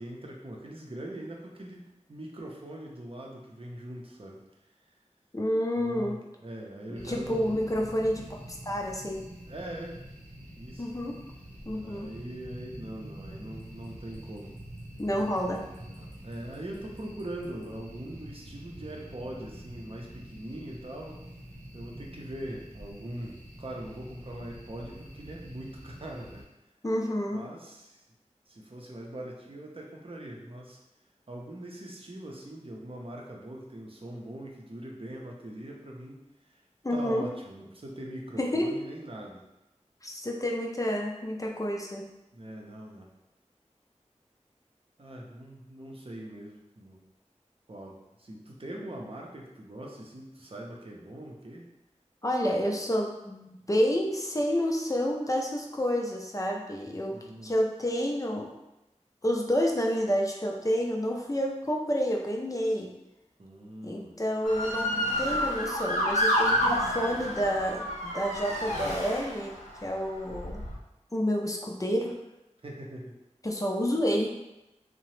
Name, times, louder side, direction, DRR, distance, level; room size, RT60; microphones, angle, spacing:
voice 1, 0.0-4.4 5.8-7.5 9.5-10.0 10.6-10.9 11.7-14.5 15.9-21.2 21.7-26.4 27.3-28.0 28.5-30.8 31.3-36.6 36.9-39.4 42.3-43.1 45.0-47.0 47.7-51.7 57.1-57.6 63.4-64.2 72.6-73.2, right 1 dB, 50° right, -1 dB, 0.6 m, -42 dB
voice 2, 5.3-6.2 6.9-9.2 10.8-11.2 11.7-12.1 15.0-15.7 26.8-27.4 36.8-37.3 38.4-38.7 40.0-42.0 52.2-58.5 59.2-62.9 63.8-69.5 69.8-70.6 71.1-72.2 73.4-74.3, equal, 25° left, 0 dB, 0.4 m, -29 dB
sound 1, 6.9-26.4, equal, 85° right, 0.7 m, -46 dB
Motor vehicle (road) / Siren, 64.4-69.7 70.3-70.8, equal, 75° left, 0.7 m, -29 dB
2.8 x 2.1 x 3.1 m, 0.93 s
wide cardioid pair, 45°, 12 cm